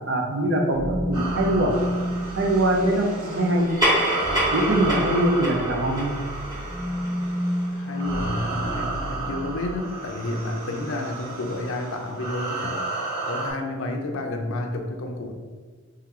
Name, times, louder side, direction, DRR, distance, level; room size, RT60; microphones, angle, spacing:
voice 1, 0.1-1.7 2.4-3.7 4.5-6.1, right 1 dB, 55° right, 1 dB, 0.6 m, -22 dB
sound 1, 0.7-9.9, equal, 20° left, 1.0 m, -31 dB
sound 2, 1.1-13.5, right 3 dB, 75° right, 1.4 m, -33 dB
sound 3, 3.5-8.4, equal, 20° right, 1.4 m, -28 dB
voice 2, 7.7-12.9 13.3-15.3, left 2 dB, 60° left, 4 dB, 0.5 m, -30 dB
3.2 x 3.0 x 3.7 m, 1.4 s
head